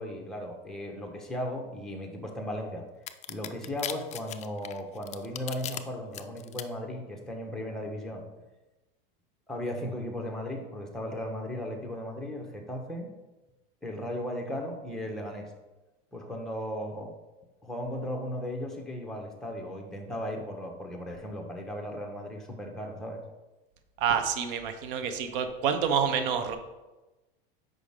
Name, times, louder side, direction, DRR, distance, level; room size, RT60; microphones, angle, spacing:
voice 1, 0.0-2.8 3.3-8.2 9.5-13.1 13.8-15.5 16.1-17.1 17.6-23.2, equal, ahead, 2 dB, 1.3 m, -36 dB
sound 1, 3.1-5.8 6.1-6.6, left 11 dB, 25° left, 0.4 m, -37 dB
voice 2, 24.0-26.6, right 7 dB, 65° right, 8 dB, 1.0 m, -28 dB
8.2 x 5.4 x 3.7 m, 1.1 s
supercardioid pair, 125°, 29 cm